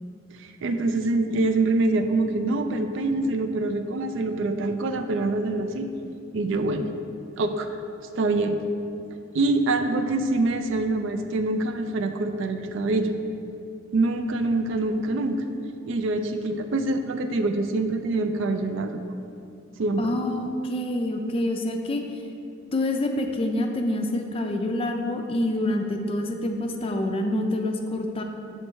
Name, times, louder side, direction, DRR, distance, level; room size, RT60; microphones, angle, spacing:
voice 1, 0.3-5.9 6.3-6.9 7.4-7.7 8.2-8.6 9.3-13.1 13.9-15.4 15.9-19.0 19.8-20.2, right 2 dB, 65° right, 7 dB, 0.4 m, -25 dB
voice 2, 20.0-22.0 22.7-28.2, left 1 dB, 30° left, 4 dB, 0.4 m, -27 dB
7.3 x 3.2 x 4.5 m, 2.6 s
head